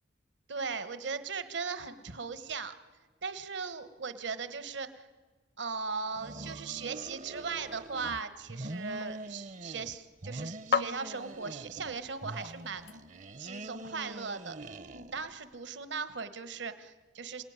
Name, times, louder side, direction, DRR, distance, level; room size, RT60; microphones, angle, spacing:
voice 1, 0.5-2.7 3.2-5.1 5.6-12.9 13.4-14.6 14.9-17.4, right 5 dB, 70° right, 12 dB, 1.3 m, -38 dB
sound 1, 6.1-8.2 8.5-10.0 10.2-11.9 12.2-15.4, right 1 dB, 40° right, 0.7 m, -44 dB
sound 2, 7.7-13.5, left 6 dB, 55° left, 0.7 m, -39 dB
27.5 x 18.0 x 9.6 m, 1.4 s
head